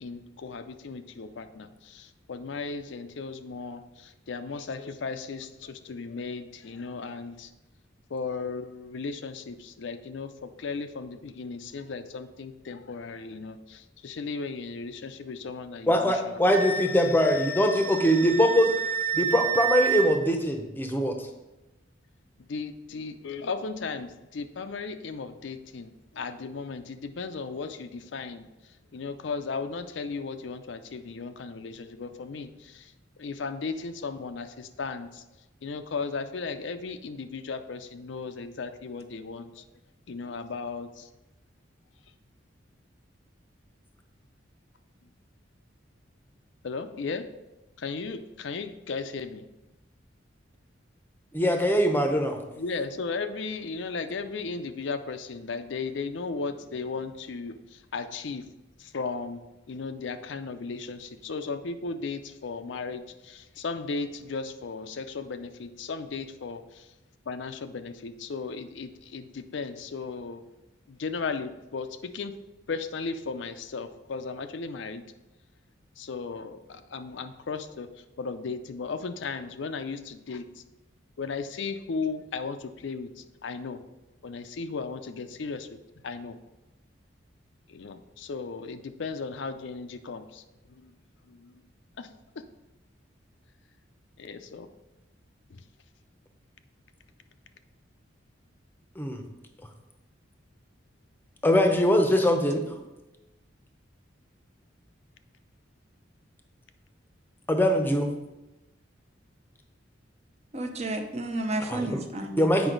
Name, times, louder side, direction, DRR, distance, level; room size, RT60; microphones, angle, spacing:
voice 1, 0.0-7.5 8.1-16.6 22.5-28.4 28.9-32.9 33.2-35.2 35.6-39.6 40.1-41.1 46.6-47.3 47.8-49.4 52.6-58.5 58.8-59.4 59.7-66.9 67.3-70.4 70.9-72.4 72.7-75.0 76.0-77.9 78.2-80.4 81.2-83.8 84.2-85.7 86.0-86.4 87.7-90.4 90.8-90.9 91.3-91.5 92.0-92.1 92.4-92.5 94.2-94.7 95.5-95.6, left 4 dB, 70° left, 9 dB, 0.5 m, -36 dB
voice 2, 15.9-18.7 19.1-21.1 51.3-52.4 99.0-99.2 101.4-102.7 107.5-108.1 111.6-112.0 112.4-112.7, equal, 10° left, 4 dB, 0.7 m, -22 dB
Wind instrument woodwind instrument, 16.5-20.1, right 6 dB, 10° right, 1.1 m, -30 dB
voice 3, 110.5-112.7, right 2 dB, 35° right, 5 dB, 0.7 m, -32 dB
8.0 x 5.3 x 3.8 m, 1.0 s
head